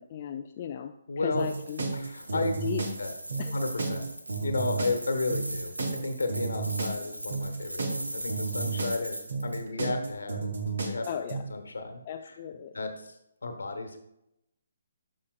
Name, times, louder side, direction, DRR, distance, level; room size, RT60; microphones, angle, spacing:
voice 1, 0.0-0.9 1.2-1.8 2.6-2.9 3.4-3.6 11.1-11.4 12.1-12.8, left 8 dB, 35° left, 4 dB, 0.4 m, -35 dB
voice 2, 1.1-1.5 1.9-2.5 3.0-3.1 3.5-4.0 4.4-10.5 10.8-11.1 11.5-12.4 12.7-13.2 13.4-14.0, left 3 dB, 65° left, 6 dB, 1.3 m, -33 dB
sound 1, 1.3-11.4, right 4 dB, 60° right, 1.4 m, -32 dB
sound 2, 1.4-9.6, right 1 dB, 85° right, 1.2 m, -40 dB
12.0 x 6.3 x 2.4 m, 0.83 s
figure-of-eight pair, 135°, 0 cm